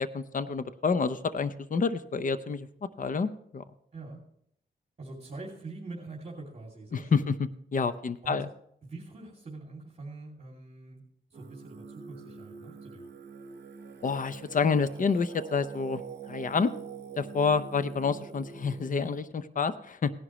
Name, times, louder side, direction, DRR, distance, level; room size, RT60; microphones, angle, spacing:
voice 1, 0.0-2.7 3.0-3.6 6.9-7.4 7.7-8.5 14.0-16.0 16.3-16.7 17.2-20.1, left 5 dB, 45° left, 12 dB, 0.7 m, -28 dB
voice 2, 3.9-4.2 5.0-7.3 8.2-8.5 8.8-11.0 11.3-13.1, right 2 dB, 35° right, -2 dB, 2.8 m, -43 dB
Singing, 11.3-19.2, right 6 dB, 65° right, 1.0 m, -45 dB
18.0 x 11.0 x 3.1 m, 0.70 s
wide cardioid pair, 100°, 19 cm